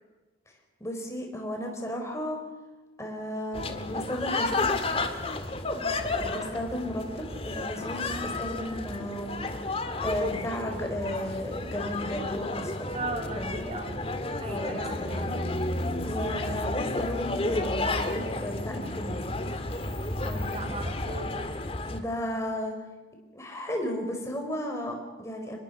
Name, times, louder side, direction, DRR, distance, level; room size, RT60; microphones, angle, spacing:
voice 1, 0.8-2.4 3.0-4.7 6.1-9.5 10.0-12.9 13.3-13.8 14.5-15.4 16.1-19.3 20.2-20.6 21.9-22.7 23.3-25.6, equal, 15° left, 2 dB, 4.7 m, -34 dB
sound 1, 3.5-22.0, left 2 dB, 30° left, 1.8 m, -32 dB
voice 2, 12.9-14.0 14.4-15.3 20.3-21.5, right 2 dB, 35° right, 4 dB, 3.1 m, -38 dB
25.5 x 21.0 x 5.7 m, 1.2 s
head